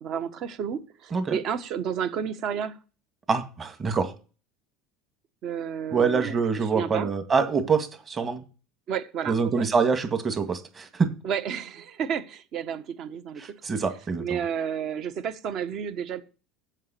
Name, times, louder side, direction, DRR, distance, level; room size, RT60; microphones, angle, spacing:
voice 1, 0.0-2.8 5.4-6.4 6.7-7.1 8.9-9.7 11.2-13.4 14.2-16.2, right 8 dB, 50° right, 1.4 m, -31 dB
voice 2, 3.3-4.1 5.9-8.4 9.3-11.1 13.4-14.4, right 5 dB, 25° right, 2.1 m, -25 dB
7.5 x 6.4 x 7.7 m
supercardioid pair, 120°, 0 cm